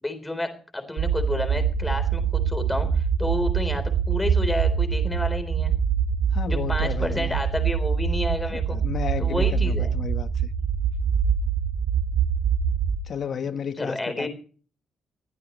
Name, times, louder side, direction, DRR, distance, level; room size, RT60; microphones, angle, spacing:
voice 1, 0.0-5.7 6.5-8.8 9.2-10.0 13.8-14.3, left 1 dB, 10° left, 3.8 m, -30 dB
sound 1, 1.0-13.0, right 7 dB, 55° right, 2.1 m, -24 dB
voice 2, 6.3-7.4 8.5-10.5 13.0-14.3, left 7 dB, 45° left, 1.1 m, -33 dB
22.5 x 15.5 x 3.1 m
cardioid pair, 170°, 0 cm